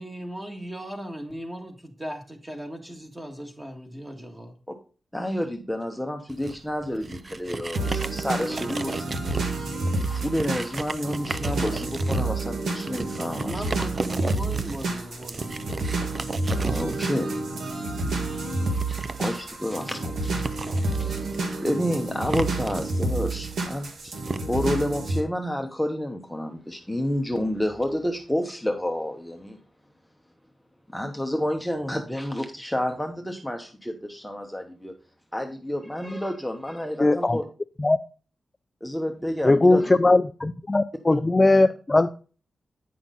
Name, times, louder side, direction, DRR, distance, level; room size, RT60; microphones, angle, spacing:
voice 1, 0.0-4.5 13.4-16.0, right 1 dB, 15° right, 1.7 m, -37 dB
voice 2, 5.1-9.0 10.0-13.5 16.6-17.3 18.9-20.3 21.0-21.3 21.6-24.1 24.5-29.6 30.9-34.9 35.3-37.4 38.8-39.9 41.1-41.2, equal, 5° left, 0.9 m, -29 dB
sound 1, 6.3-24.4, right 3 dB, 35° right, 0.5 m, -35 dB
sound 2, 7.7-25.2, right 2 dB, 85° right, 1.6 m, -29 dB
voice 3, 37.0-37.4 37.8-38.0 39.4-42.2, left 2 dB, 20° left, 0.3 m, -19 dB
9.3 x 5.9 x 3.8 m
wide cardioid pair, 130°, 0 cm